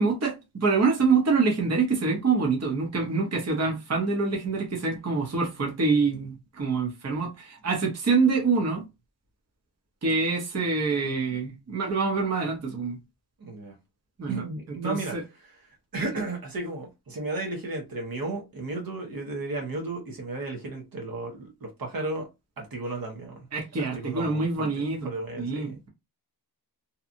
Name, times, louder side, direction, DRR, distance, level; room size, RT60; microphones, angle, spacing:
voice 1, 0.0-8.8 10.0-13.0 14.2-15.2 16.1-16.2 23.5-25.9, right 4 dB, 40° right, 0.8 m, -26 dB
voice 2, 13.4-13.7 14.3-15.1 15.9-22.3 22.6-23.4 23.9-24.4 24.8-25.8, right 2 dB, 60° right, 0.9 m, -34 dB
2.8 x 2.3 x 2.5 m
wide cardioid pair, 145°, 40 cm